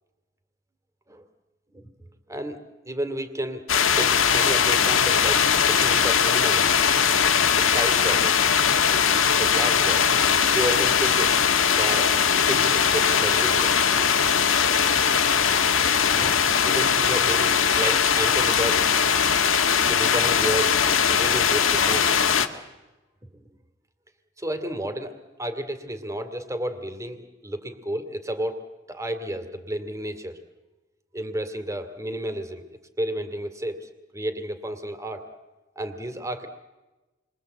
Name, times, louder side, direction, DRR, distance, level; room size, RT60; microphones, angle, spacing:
voice 1, 2.8-3.6 4.0-6.8 7.6-8.4 9.4-10.2 10.5-11.4 11.8-12.1 12.4-13.8 16.1-16.4 16.6-18.9 19.9-20.8 21.1-22.2 24.4-25.1 25.4-28.6 28.9-30.4 31.1-32.6 33.0-35.2 35.8-36.5, right 1 dB, 15° right, 8 dB, 2.5 m, -31 dB
sound 1, 3.7-22.5, left 7 dB, 85° left, 1.7 m, -20 dB
29.0 x 23.0 x 8.0 m, 1.1 s
head